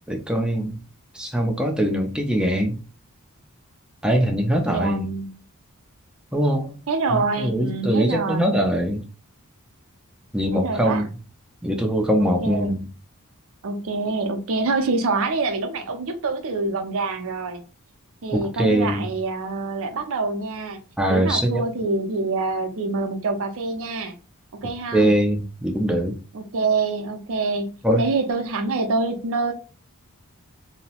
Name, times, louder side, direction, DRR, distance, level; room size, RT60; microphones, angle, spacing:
voice 1, 0.1-0.8 1.1-2.8 4.0-5.1 6.3-6.8 7.1-9.0 10.3-11.1 11.6-12.8 18.3-19.1 21.0-21.6 24.9-26.2 27.8-28.0, equal, 5° right, 0.4 m, -22 dB
voice 2, 4.7-5.3 6.9-8.6 10.5-11.0 12.2-12.8 13.6-17.6 18.2-20.8 21.1-24.1 24.6-25.1 26.3-27.7 28.0-29.5, right 3 dB, 65° right, 0.5 m, -26 dB
2.7 x 2.0 x 2.8 m
head